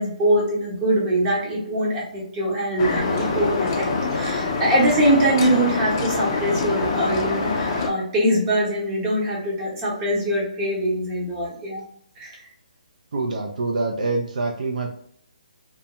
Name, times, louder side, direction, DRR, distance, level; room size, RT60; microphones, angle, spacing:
voice 1, 0.0-11.8 12.2-12.4, right 1 dB, 20° right, -5 dB, 0.9 m, -23 dB
sound 1, 2.8-7.9, left 4 dB, 35° left, 0.4 m, -25 dB
voice 2, 13.1-14.9, right 3 dB, 65° right, 1 dB, 0.4 m, -25 dB
2.3 x 2.0 x 2.8 m, 0.66 s
hypercardioid pair, 150°, 4 cm